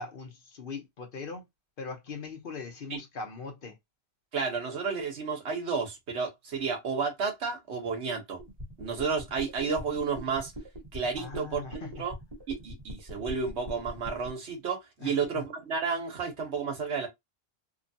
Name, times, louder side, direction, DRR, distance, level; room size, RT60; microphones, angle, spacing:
voice 1, 0.0-1.4 1.8-3.8 11.2-11.9 15.0-15.1, left 4 dB, 60° left, 0.9 m, -40 dB
voice 2, 4.3-8.4 8.8-10.5 10.9-12.1 12.5-17.1, right 5 dB, 90° right, 1.2 m, -32 dB
sound 1, 8.4-14.3, equal, 30° right, 1.2 m, -42 dB
2.9 x 2.3 x 2.6 m
omnidirectional pair, 1.1 m